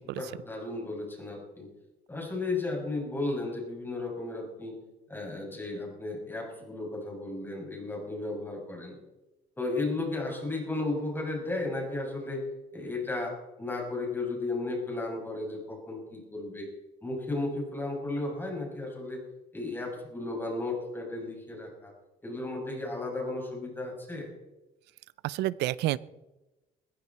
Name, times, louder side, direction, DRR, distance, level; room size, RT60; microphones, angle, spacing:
voice 1, 0.2-1.7 2.1-4.8 5.1-9.0 9.6-12.5 12.7-16.7 17.0-19.2 19.5-21.9 22.2-24.3, left 2 dB, 10° left, 0 dB, 6.9 m, -34 dB
voice 2, 25.2-26.0, right 16 dB, 80° right, 20 dB, 0.6 m, -29 dB
20.5 x 15.5 x 4.4 m, 1.0 s
cardioid pair, 110°, 17 cm